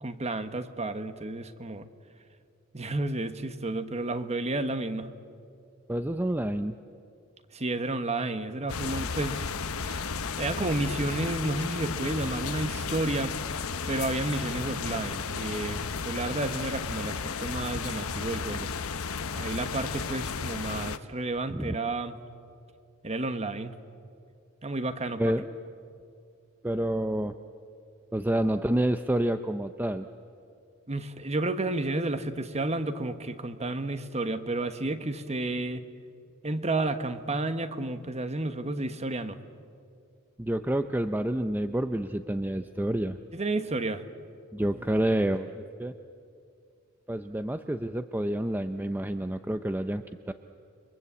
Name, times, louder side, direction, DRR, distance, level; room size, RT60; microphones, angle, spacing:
voice 1, 0.0-1.9 2.7-5.1 7.5-9.5 9.8-10.1 10.4-13.3 13.9-18.7 19.3-22.2 23.0-23.8 24.6-25.3 30.9-35.8 36.4-39.4 43.3-44.0, right 2 dB, 30° right, 10 dB, 1.3 m, -31 dB
voice 2, 5.9-6.8 21.5-21.7 25.2-25.6 26.6-27.4 28.1-30.1 40.4-43.2 44.5-45.9 47.1-50.3, right 1 dB, 10° right, 9 dB, 0.6 m, -28 dB
sound 1, 8.7-21.0, left 5 dB, 80° left, 0.9 m, -33 dB
29.5 x 23.0 x 8.3 m, 2.4 s
head